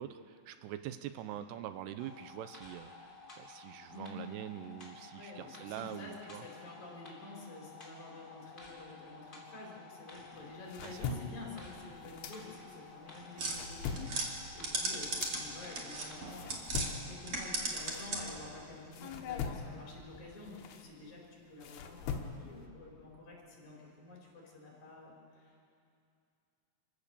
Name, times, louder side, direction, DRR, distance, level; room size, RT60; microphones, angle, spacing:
voice 1, 0.0-2.9 3.4-6.4 10.8-11.2, right 11 dB, 85° right, 10 dB, 2.8 m, -44 dB
sound 1, 2.0-17.9 18.3-18.4, left 4 dB, 15° left, 2.9 m, -53 dB
voice 2, 5.1-25.7, left 2 dB, 45° left, -3 dB, 5.6 m, -49 dB
sound 2, 10.3-12.9 13.2-18.5 18.9-22.7, left 6 dB, 75° left, 3.1 m, -42 dB
sound 3, 13.4-16.9 17.2-18.5, right 3 dB, 40° right, 2.4 m, -37 dB
27.0 x 15.5 x 6.9 m, 2.5 s
omnidirectional pair, 4.8 m